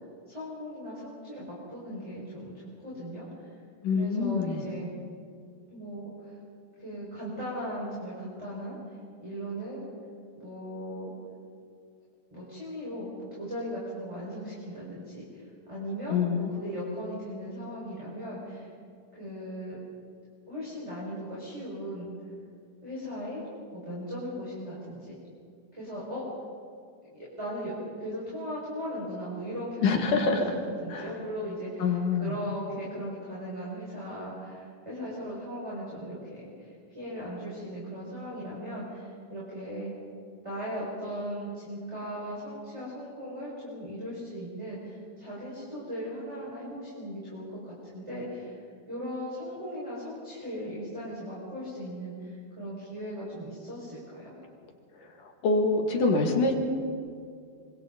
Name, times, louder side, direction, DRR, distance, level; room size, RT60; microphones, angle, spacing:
voice 1, 0.3-3.5 3.9-5.0 5.7-6.4 6.8-9.8 10.3-11.1 12.3-18.7 19.1-19.8 20.5-22.1 22.8-23.4 23.7-25.2 25.7-26.2 27.1-39.9 40.4-48.6 48.9-54.3, equal, 10° right, -7 dB, 5.3 m, -38 dB
voice 2, 3.8-4.6 16.1-16.5 29.8-30.6 30.9-31.1 31.8-32.3 55.4-56.5, left 4 dB, 75° left, 2 dB, 3.8 m, -25 dB
26.5 x 25.5 x 4.1 m, 2.3 s
omnidirectional pair, 3.7 m